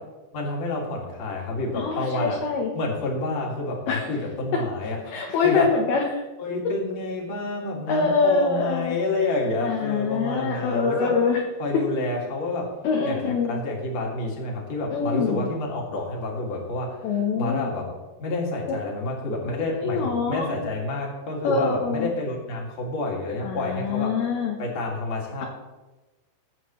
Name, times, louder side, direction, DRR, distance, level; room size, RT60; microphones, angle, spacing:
voice 1, 0.3-2.4 2.7-5.0 5.4-5.7 6.4-11.1 11.6-12.6 13.0-17.9 18.2-24.1 24.6-25.5, left 2 dB, 45° left, -1 dB, 2.8 m, -29 dB
voice 2, 1.7-2.7 3.9-4.1 5.1-6.1 7.9-9.0 9.6-11.4 12.8-13.6 14.9-15.5 17.0-17.7 18.7-18.8 19.8-20.5 21.4-22.1 23.4-24.6, left 5 dB, 70° left, 0 dB, 2.5 m, -24 dB
20.0 x 8.3 x 3.2 m, 1.1 s
omnidirectional pair, 5.5 m